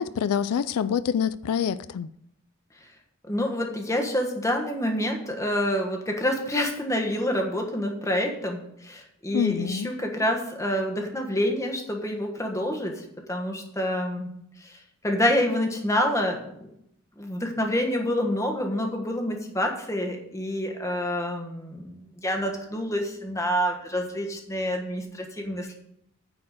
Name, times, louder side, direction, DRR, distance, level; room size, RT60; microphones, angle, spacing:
voice 1, 0.0-2.1 9.3-9.9, left 8 dB, 85° left, 0.3 m, -26 dB
voice 2, 3.3-14.3 14.6-14.8 15.0-16.7 17.2-25.7, left 1 dB, 15° left, 1.3 m, -27 dB
9.7 x 4.4 x 7.5 m
head